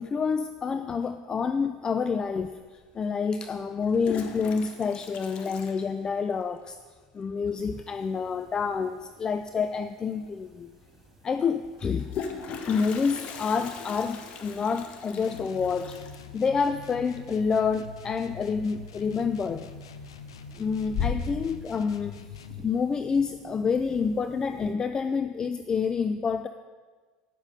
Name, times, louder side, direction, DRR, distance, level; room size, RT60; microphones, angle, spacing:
voice 1, 0.0-6.8 7.1-10.7 11.2-12.1 12.7-16.0 16.3-19.7 20.6-22.3 22.6-26.5, left 5 dB, 30° left, 10 dB, 0.4 m, -28 dB
Toilet flush, 2.4-2.5 3.7-6.5 6.8-6.9 7.2-7.3 7.5-7.9 9.7-9.8 10.1-10.2 11.7-18.4 18.7-19.2 19.6-20.1 20.5-21.5, left 6 dB, 50° left, 1.1 m, -38 dB
sound 1, 7.6-24.7, right 3 dB, 15° right, 1.6 m, -55 dB
sound 2, 15.2-22.7, left 5 dB, 85° left, 0.6 m, -44 dB
10.0 x 7.2 x 5.2 m, 1.4 s
hypercardioid pair, 80°, 3 cm